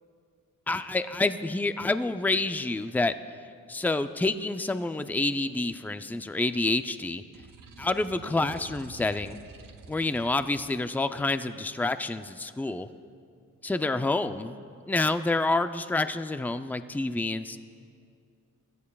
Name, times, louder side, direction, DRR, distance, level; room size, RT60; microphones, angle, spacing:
voice 1, 0.7-3.1 3.7-7.2 7.8-9.4 9.9-12.9 13.6-14.6 14.9-17.6, left 2 dB, 5° left, 10 dB, 0.5 m, -28 dB
sound 1, 7.3-10.7, right 5 dB, 90° right, 0.9 m, -49 dB
23.5 x 14.5 x 2.3 m, 2.3 s
cardioid pair, 70°, 32 cm